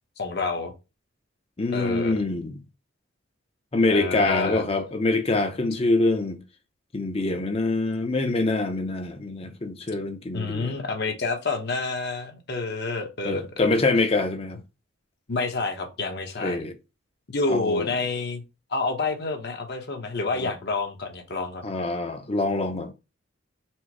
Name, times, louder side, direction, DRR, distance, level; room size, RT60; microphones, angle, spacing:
voice 1, 0.2-0.7 1.7-2.2 3.9-4.6 10.3-13.7 15.3-16.6 17.3-18.4 18.7-21.6, left 3 dB, 55° left, 0.9 m, -28 dB
voice 2, 1.6-2.6 3.7-6.4 6.9-10.7 13.2-14.6 16.4-16.7 17.5-17.9 20.4-20.5 21.6-22.9, left 2 dB, 30° left, 0.6 m, -25 dB
4.4 x 2.0 x 4.5 m
head